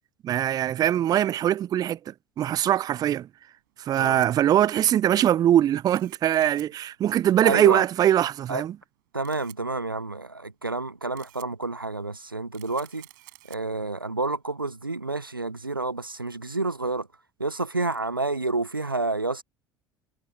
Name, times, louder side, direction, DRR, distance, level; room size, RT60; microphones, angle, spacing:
voice 1, 0.2-3.3 3.8-8.7, right 11 dB, 35° right, 0.5 m, -22 dB
Camera, 3.6-17.0, right 21 dB, 65° right, 6.0 m, -55 dB
voice 2, 7.4-7.8 8.5-8.6 9.1-13.1 13.5-17.1 17.4-19.4, right 3 dB, 90° right, 0.7 m, -29 dB
figure-of-eight pair, 65°, 11 cm